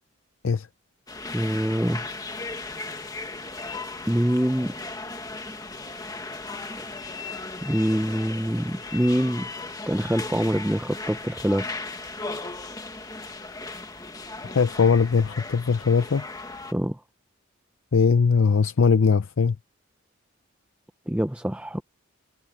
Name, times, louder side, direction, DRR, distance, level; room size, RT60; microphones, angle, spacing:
sound 1, 1.1-16.7, left 3 dB, 15° left, 1.4 m, -37 dB
voice 1, 1.3-2.1 4.1-4.7 6.8-6.9 7.6-9.5 9.9-11.7 16.7-17.0 21.1-21.8, equal, 5° right, 0.6 m, -25 dB
voice 2, 14.4-16.2 17.9-19.6, left 5 dB, 70° left, 0.5 m, -20 dB
head